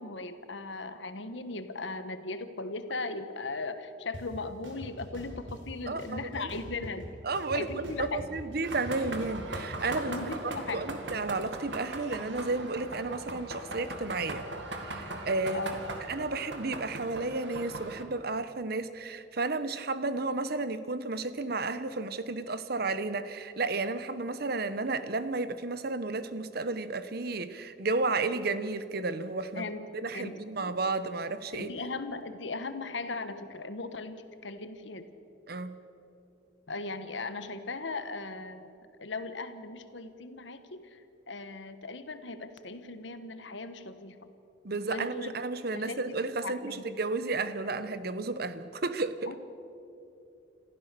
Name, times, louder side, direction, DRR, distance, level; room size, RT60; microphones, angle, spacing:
voice 1, 0.0-7.1 7.5-8.3 10.0-10.9 15.5-15.8 29.5-29.8 30.1-30.8 31.5-35.1 36.7-38.7 39.0-44.2 44.8-45.3 45.7-46.9 49.3-49.4, left 3 dB, 75° left, 10 dB, 1.3 m, -38 dB
sound 1, 4.1-4.2 4.6-5.6 6.0-7.0 7.3-9.6, equal, 90° right, 4.2 m, -43 dB
voice 2, 5.9-6.5 7.2-10.2 10.7-14.5 14.9-15.6 16.1-29.7 30.0-31.7 35.5-35.8 44.6-49.3, right 3 dB, 55° right, 12 dB, 1.0 m, -32 dB
sound 2, 8.6-18.0, right 2 dB, 70° right, 2.3 m, -39 dB
27.0 x 15.0 x 6.9 m, 2.8 s
head